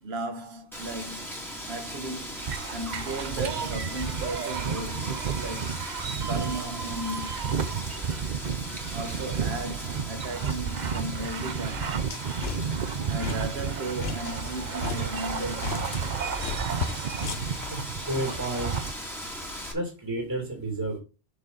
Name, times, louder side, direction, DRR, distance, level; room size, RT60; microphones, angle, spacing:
voice 1, 0.0-5.8 6.3-8.2 8.9-12.1 13.1-16.0, right 2 dB, 85° right, 1.3 m, -36 dB
Wind, 0.7-19.7, equal, ahead, 2.2 m, -39 dB
sound 1, 2.4-18.9, right 7 dB, 50° right, 0.7 m, -32 dB
sound 2, 11.8-17.7, left 6 dB, 75° left, 1.3 m, -36 dB
voice 2, 17.7-18.8 19.7-21.0, right 1 dB, 20° right, 2.4 m, -31 dB
7.2 x 6.6 x 3.9 m
omnidirectional pair, 1.0 m